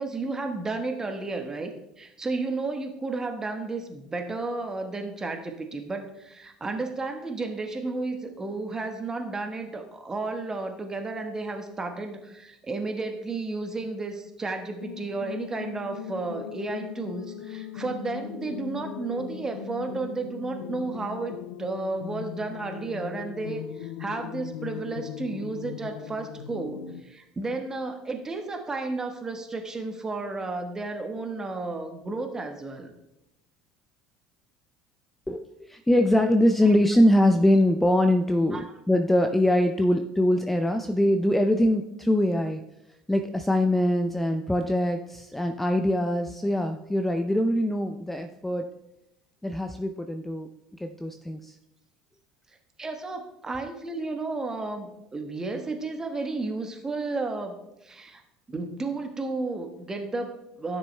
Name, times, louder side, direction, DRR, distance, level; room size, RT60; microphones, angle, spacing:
voice 1, 0.0-32.9 38.5-38.6 52.8-58.2 58.5-60.8, right 3 dB, 20° right, 5 dB, 1.2 m, -33 dB
sound 1, 14.8-27.0, left 10 dB, 75° left, 0.5 m, -39 dB
voice 2, 35.3-42.6 43.1-48.7 49.4-50.5 50.8-51.6, left 1 dB, 5° left, 6 dB, 0.5 m, -23 dB
12.5 x 6.7 x 2.2 m, 0.87 s
hypercardioid pair, 65°, 3 cm